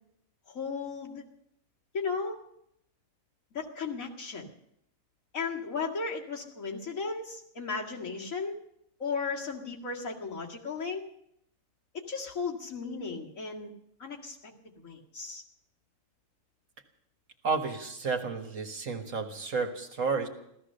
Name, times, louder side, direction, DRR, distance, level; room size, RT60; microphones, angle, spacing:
voice 1, 0.5-1.2 1.9-2.4 3.5-4.5 5.3-8.5 9.0-11.0 11.9-13.7 14.0-14.4 14.8-15.4, left 4 dB, 75° left, -1 dB, 2.5 m, -35 dB
voice 2, 17.4-20.3, right 4 dB, 70° right, 5 dB, 1.9 m, -31 dB
15.5 x 13.5 x 6.7 m, 0.75 s
omnidirectional pair, 1.4 m